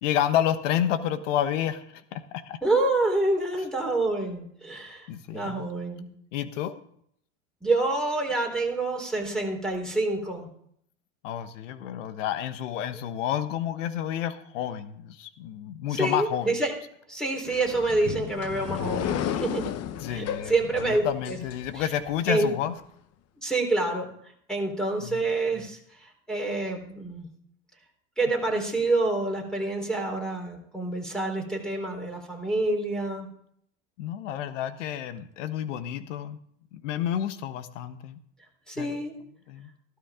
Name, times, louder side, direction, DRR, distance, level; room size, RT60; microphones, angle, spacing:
voice 1, 0.0-2.6 5.1-5.7 6.3-6.8 11.2-16.6 20.0-22.7 25.0-25.2 34.0-36.4 36.7-38.2 38.8-39.0 39.5-39.7, left 10 dB, 75° left, 12 dB, 1.3 m, -30 dB
voice 2, 2.6-6.1 7.6-10.5 12.9-13.0 15.9-16.7 17.1-19.7 20.1-21.4 21.7-21.8 22.3-22.5 23.4-24.1 24.5-25.8 26.3-27.3 28.2-33.3 38.7-39.1, right 2 dB, ahead, 2 dB, 4.0 m, -27 dB
sound 1, 17.4-22.1, left 9 dB, 40° left, 1.0 m, -33 dB
14.5 x 12.5 x 3.7 m, 0.67 s
hypercardioid pair, 90°, 37 cm